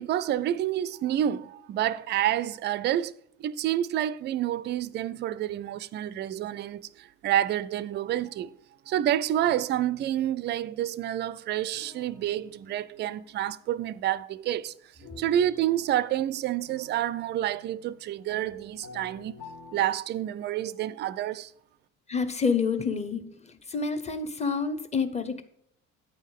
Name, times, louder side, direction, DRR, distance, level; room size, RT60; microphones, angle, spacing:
voice 1, 0.0-8.5 8.9-14.7 15.0-19.3 19.7-21.5, right 11 dB, 30° right, 0.3 m, -29 dB
sound 1, 10.4-10.8 11.7-13.8 15.0-19.8, left 4 dB, 55° left, 1.4 m, -50 dB
voice 2, 22.1-25.4, left 5 dB, 15° left, 0.9 m, -28 dB
8.9 x 5.4 x 5.2 m
figure-of-eight pair, 55°, 39 cm